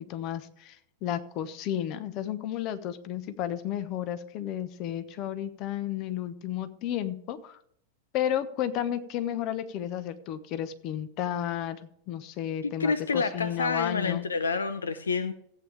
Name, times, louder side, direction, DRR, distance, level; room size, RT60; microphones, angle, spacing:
voice 1, 0.1-7.6 8.1-11.8 12.1-14.3, left 10 dB, 40° left, 12 dB, 1.1 m, -32 dB
voice 2, 12.6-15.3, left 4 dB, 70° left, 13 dB, 0.7 m, -28 dB
15.5 x 8.8 x 3.4 m, 0.69 s
figure-of-eight pair, 90°, 0 cm